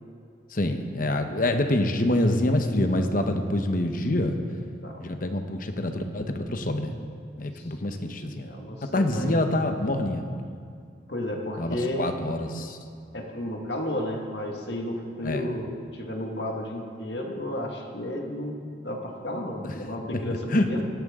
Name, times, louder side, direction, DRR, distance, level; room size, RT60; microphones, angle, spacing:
voice 1, 0.5-4.4 5.0-6.9 7.4-8.5 8.8-10.3 11.6-12.8 15.2-15.5 19.6-19.8 20.5-20.8, left 1 dB, 45° left, 6 dB, 1.0 m, -26 dB
voice 2, 4.6-5.0 7.5-7.7 8.4-9.4 11.1-12.1 13.1-20.8, left 1 dB, 60° left, 1 dB, 1.8 m, -33 dB
17.5 x 13.0 x 3.7 m, 2.3 s
head